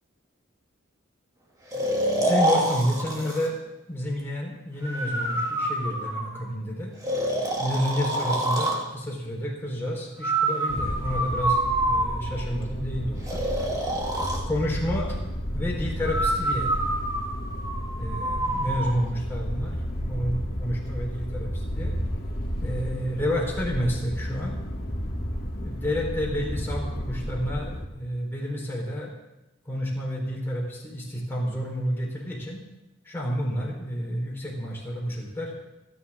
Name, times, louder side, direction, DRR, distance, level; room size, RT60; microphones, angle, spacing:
Breathing, 1.7-3.5 4.8-6.5 7.0-8.8 10.2-12.5 13.3-14.4 16.0-18.9, right 1 dB, 20° right, 2.4 m, -27 dB
voice 1, 2.2-3.6 3.9-6.9 7.6-11.6 11.9-13.4 14.5-15.2 15.5-16.7 18.0-19.8 20.1-21.9 22.6-24.6 25.5-29.1 29.7-32.6 33.0-35.5, equal, 10° left, -3 dB, 3.9 m, -30 dB
sound 1, 10.7-27.9, equal, 55° left, 2.3 m, -32 dB
28.5 x 9.8 x 3.6 m, 0.93 s
head